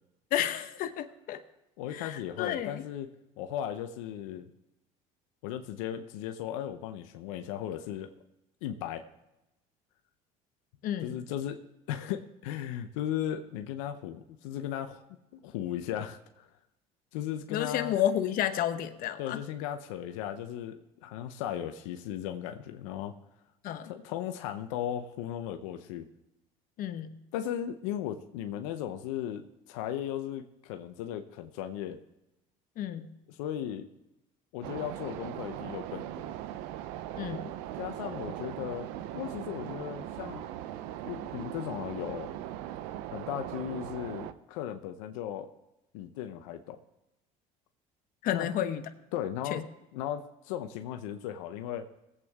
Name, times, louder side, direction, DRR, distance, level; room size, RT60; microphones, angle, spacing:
voice 1, 0.3-1.4 1.9-2.8 10.8-11.2 17.5-19.4 23.6-23.9 26.8-27.2 32.8-33.1 37.2-37.5 48.2-48.9 49.5-49.6, left 11 dB, 60° left, 10 dB, 0.9 m, -31 dB
voice 2, 1.8-3.1 3.4-4.5 5.4-8.1 8.6-9.0 11.0-11.6 11.9-16.5 17.1-18.0 19.2-23.1 23.8-26.1 27.3-32.0 33.3-33.9 34.5-36.3 37.8-38.9 39.1-40.5 41.0-42.3 43.1-45.5 45.9-46.8 48.3-48.5 49.1-49.6 49.9-51.9, left 10 dB, 90° left, 7 dB, 0.8 m, -36 dB
sound 1, 34.6-44.3, right 12 dB, 80° right, 0.7 m, -39 dB
19.5 x 8.3 x 3.6 m, 0.94 s
supercardioid pair, 95°, 16 cm